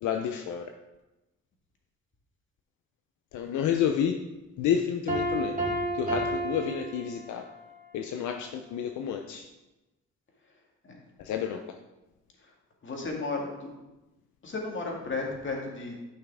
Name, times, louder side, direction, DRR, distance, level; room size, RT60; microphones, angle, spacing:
voice 1, 0.0-0.7 3.3-4.2 4.6-5.6 5.9-7.4 7.9-9.5 11.2-11.6, left 8 dB, 75° left, 5 dB, 0.6 m, -30 dB
Piano, 5.1-7.6, right 1 dB, 25° right, 2.6 m, -31 dB
voice 2, 12.8-13.7 14.4-16.0, left 3 dB, 40° left, 0 dB, 2.0 m, -33 dB
9.8 x 5.7 x 3.6 m, 1.0 s
cardioid pair, 90°, 30 cm